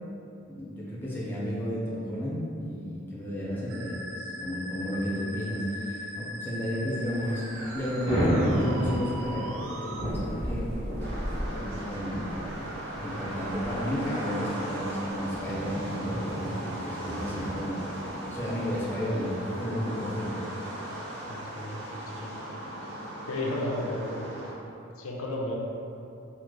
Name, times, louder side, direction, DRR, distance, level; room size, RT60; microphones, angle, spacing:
voice 1, 0.5-7.5 7.7-10.7 11.0-11.1 11.5-12.2 13.0-17.8 18.3-20.4, equal, 10° left, -7 dB, 0.5 m, -32 dB
Musical instrument, 3.7-10.1, equal, 75° right, 0.3 m, -39 dB
Thunder / Rain, 6.9-19.6, equal, 30° right, 1.2 m, -33 dB
wet traffic with homeless man, 11.0-24.5, right 1 dB, 50° right, 0.7 m, -38 dB
voice 2, 21.3-21.8 22.1-22.5 23.3-24.3 25.0-25.6, left 1 dB, 90° left, -1 dB, 0.5 m, -33 dB
3.7 x 2.0 x 3.1 m, 2.6 s
head